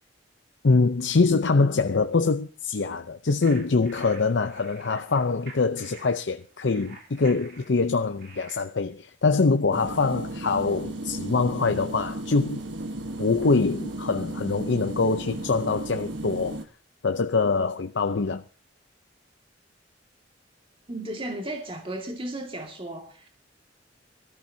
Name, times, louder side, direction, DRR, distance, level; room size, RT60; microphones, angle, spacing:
voice 1, 0.6-12.6 13.2-16.6 17.0-18.4, left 4 dB, 75° left, 0.7 m, -24 dB
sound 1, 3.4-8.6, right 4 dB, 60° right, 3.5 m, -48 dB
sound 2, 9.7-16.7, right 1 dB, 85° right, 1.3 m, -35 dB
voice 2, 20.9-23.3, right 1 dB, 30° right, 2.1 m, -34 dB
24.0 x 14.0 x 2.8 m
head